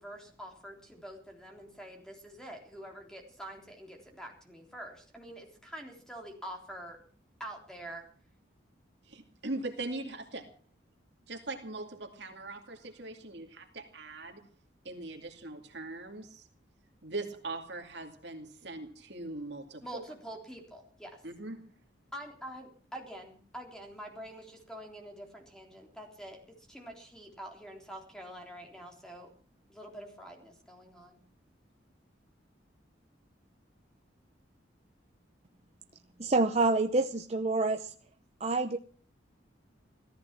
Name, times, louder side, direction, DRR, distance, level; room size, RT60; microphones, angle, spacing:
voice 1, 0.0-7.0 7.4-8.0 19.8-21.2 22.1-29.3 29.7-31.2, right 1 dB, 5° left, 2 dB, 3.6 m, -46 dB
voice 2, 9.0-10.5 11.3-14.5 14.8-16.5 17.0-20.0 21.2-21.6, right 2 dB, 65° right, 4 dB, 2.4 m, -41 dB
voice 3, 36.2-37.9 38.4-38.8, right 3 dB, 35° right, 6 dB, 0.7 m, -27 dB
16.0 x 14.5 x 6.0 m, 0.43 s
head